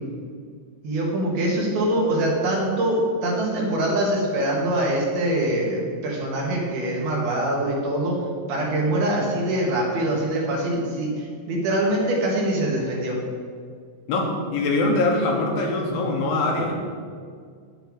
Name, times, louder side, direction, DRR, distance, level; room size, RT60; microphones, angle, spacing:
voice 1, 0.8-8.2 8.5-13.2, right 1 dB, 70° right, -2 dB, 3.6 m, -24 dB
voice 2, 14.1-16.9, left 2 dB, 70° left, 1 dB, 2.6 m, -23 dB
10.0 x 7.9 x 4.7 m, 2.1 s
omnidirectional pair, 4.6 m